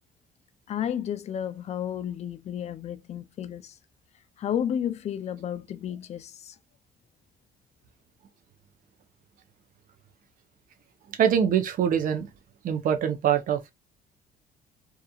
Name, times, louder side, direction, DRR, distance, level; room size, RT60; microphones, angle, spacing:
voice 1, 0.7-3.7 4.4-6.5, left 9 dB, 40° left, 0.4 m, -32 dB
voice 2, 11.2-12.3 12.6-13.7, right 8 dB, 55° right, 0.6 m, -24 dB
2.8 x 2.3 x 2.3 m
cardioid pair, 110°, 17 cm